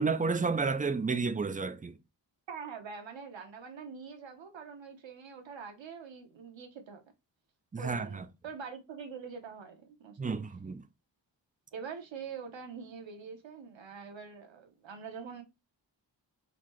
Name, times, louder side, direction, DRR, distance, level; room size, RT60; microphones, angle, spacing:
voice 1, 0.0-2.0 7.7-8.3 10.2-10.8, right 4 dB, 20° right, 0.4 m, -31 dB
voice 2, 2.5-7.0 7.8-10.4 11.7-15.4, right 6 dB, 90° right, 1.0 m, -44 dB
4.0 x 2.7 x 3.0 m
wide cardioid pair, 110°, 44 cm